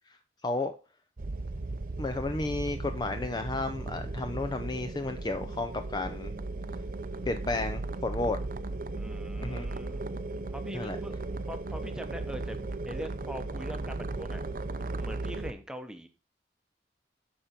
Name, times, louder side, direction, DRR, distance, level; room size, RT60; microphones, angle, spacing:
voice 1, 0.4-0.7 2.0-6.3 7.3-8.4 9.4-9.7 10.7-11.0, left 2 dB, 25° left, 0.5 m, -32 dB
sound 1, 1.2-15.5, right 2 dB, 50° right, 0.6 m, -36 dB
voice 2, 9.0-10.0 10.5-11.2 11.5-14.4 15.0-16.1, equal, 5° right, 0.9 m, -42 dB
12.0 x 4.5 x 4.3 m
head